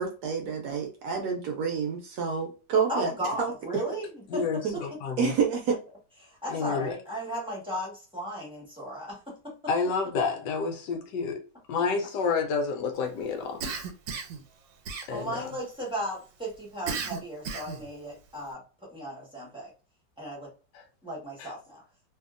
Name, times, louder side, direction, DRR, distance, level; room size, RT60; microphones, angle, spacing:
voice 1, 0.0-3.1 3.4-3.5 4.6-4.7 5.2-5.8, right 6 dB, 70° right, 1.0 m, -28 dB
voice 2, 2.9-4.8 6.2-9.5 11.7-11.8 15.1-18.6 18.9-19.7 20.2-20.5 21.0-21.8, equal, 5° right, 0.8 m, -36 dB
voice 3, 4.3-5.3 6.5-6.9 9.7-11.4 11.7-13.6 15.1-15.5 20.7-20.8 21.4-21.5, left 5 dB, 75° left, 1.1 m, -29 dB
Cough, 13.6-14.4 14.9-15.5 16.9-17.9, right 5 dB, 85° right, 1.4 m, -34 dB
2.8 x 2.7 x 2.4 m
omnidirectional pair, 2.0 m